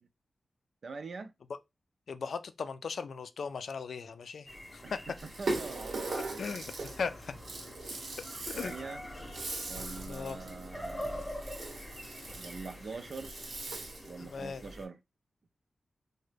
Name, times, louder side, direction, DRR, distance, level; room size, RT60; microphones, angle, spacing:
voice 1, 0.8-1.3 4.8-6.4 8.0-8.2 8.5-9.0 9.7-11.3 12.4-13.3 14.0-15.0, right 4 dB, 60° right, 0.4 m, -44 dB
voice 2, 2.1-5.1 6.4-7.3 8.5-8.7 10.1-10.4 14.2-14.6, left 5 dB, 80° left, 0.3 m, -38 dB
sound 1, 4.5-14.9, equal, 10° left, 0.7 m, -45 dB
Rattle (instrument), 5.2-14.2, right 2 dB, 75° right, 0.9 m, -40 dB
3.7 x 2.1 x 3.2 m
wide cardioid pair, 155°, 0 cm